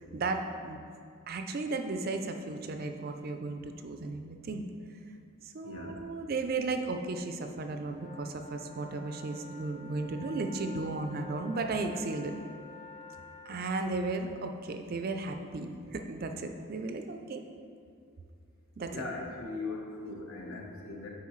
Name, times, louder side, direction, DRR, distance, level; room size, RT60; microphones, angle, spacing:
voice 1, 0.1-0.8 1.3-4.6 5.4-12.3 13.5-17.5 18.8-19.0, right 3 dB, 40° right, 6 dB, 0.4 m, -35 dB
voice 2, 5.6-6.0 18.9-21.1, left 3 dB, 65° left, -1 dB, 1.0 m, -39 dB
sound 1, 7.9-13.5, left 3 dB, 35° left, 0.8 m, -49 dB
9.3 x 4.7 x 3.1 m, 2.3 s
head